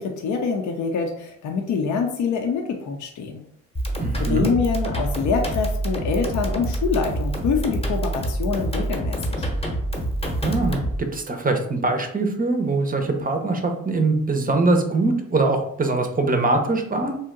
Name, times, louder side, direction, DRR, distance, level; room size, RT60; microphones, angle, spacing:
voice 1, 0.0-3.4 4.2-9.5, left 5 dB, 55° left, 3 dB, 0.6 m, -25 dB
sound 1, 3.7-11.0, right 1 dB, 15° left, 0.9 m, -26 dB
voice 2, 4.0-4.5 10.4-17.2, right 3 dB, 25° right, 5 dB, 0.6 m, -22 dB
2.7 x 2.1 x 3.7 m, 0.69 s
supercardioid pair, 60°, 35 cm